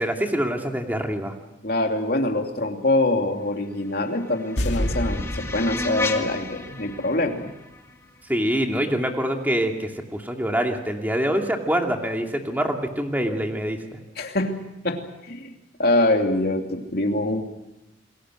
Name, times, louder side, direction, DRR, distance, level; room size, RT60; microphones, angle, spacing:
voice 1, 0.0-1.3 8.3-14.0, equal, 10° right, 3 dB, 2.5 m, -25 dB
voice 2, 1.6-7.5 14.2-15.5 15.8-17.4, left 2 dB, 55° left, 3 dB, 2.8 m, -24 dB
sound 1, 3.7-8.8, left 3 dB, 15° left, 2.0 m, -34 dB
sound 2, 4.6-7.8 8.0-8.1, left 1 dB, 75° left, 2.3 m, -30 dB
29.0 x 21.5 x 6.4 m, 0.98 s
head